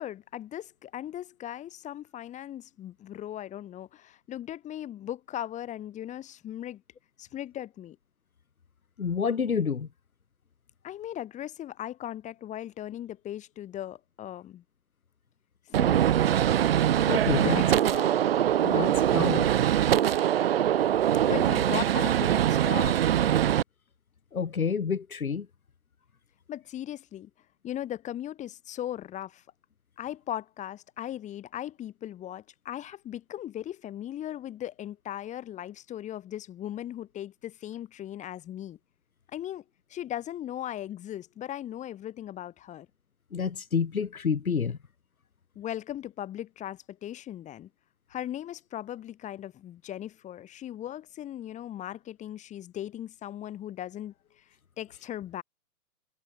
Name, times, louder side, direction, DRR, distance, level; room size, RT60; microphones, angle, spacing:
voice 1, 0.0-6.8 7.2-8.0 10.8-14.6 15.7-16.2 17.3-18.1 21.3-23.0 26.5-27.3 27.6-29.4 30.0-38.8 39.3-39.6 39.9-42.9 45.6-47.7 48.1-54.4 54.8-55.4, left 12 dB, 15° left, 5.4 m, -38 dB
voice 2, 9.0-9.9 17.0-17.6 17.9-18.0 18.6-19.5 24.3-25.5 43.3-44.8, left 6 dB, 60° left, 2.9 m, -29 dB
Gunshot gunfire, 15.7-23.6, right 10 dB, 40° right, 1.2 m, -23 dB
figure-of-eight pair, 130°, 47 cm